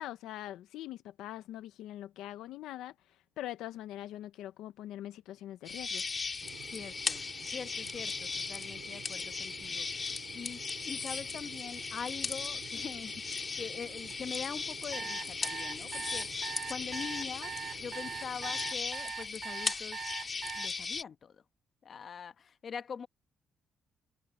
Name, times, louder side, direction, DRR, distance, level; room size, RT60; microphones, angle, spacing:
voice 1, 0.0-6.1, left 13 dB, 90° left, 0.6 m, -43 dB
sound 1, 5.6-21.0, left 4 dB, 35° left, 2.5 m, -38 dB
sound 2, 6.4-18.7, right 12 dB, 85° right, 4.9 m, -52 dB
voice 2, 6.7-9.9 10.3-16.3 16.7-17.5 17.8-20.0 20.5-21.4 21.8-23.1, left 6 dB, 50° left, 1.3 m, -43 dB
sound 3, 14.9-20.7, right 7 dB, 50° right, 0.9 m, -41 dB
cardioid pair, 90°, 0 cm